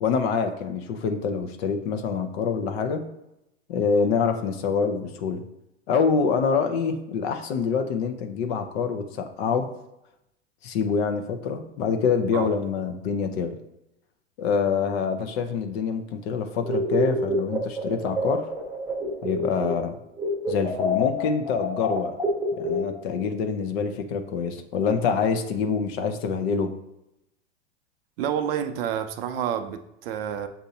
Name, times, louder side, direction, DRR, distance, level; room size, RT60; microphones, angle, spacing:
voice 1, 0.0-3.0 3.7-5.4 5.9-9.7 10.6-13.5 14.4-18.4 19.2-20.0 20.5-22.1 22.6-26.7, left 6 dB, 60° left, 0.7 m, -26 dB
sound 1, 16.6-19.9 20.2-23.2, left 1 dB, 5° right, 0.9 m, -27 dB
voice 2, 28.2-30.5, right 9 dB, 55° right, 0.5 m, -29 dB
7.0 x 2.7 x 2.7 m
hypercardioid pair, 105°, 36 cm